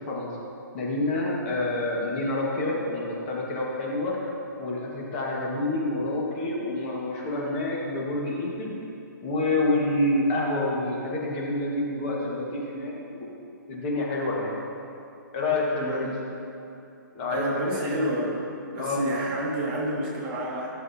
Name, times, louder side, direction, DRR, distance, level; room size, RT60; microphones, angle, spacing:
voice 1, 0.7-4.2 4.6-8.7 9.2-13.3 13.7-14.5 15.3-16.1 17.1-18.4 18.8-19.0, left 2 dB, 30° left, -3 dB, 1.4 m, -28 dB
voice 2, 15.8-16.1 17.3-18.4 18.7-20.7, right 1 dB, 30° right, -4 dB, 1.6 m, -30 dB
15.0 x 6.6 x 2.7 m, 2.7 s
hypercardioid pair, 160°, 11 cm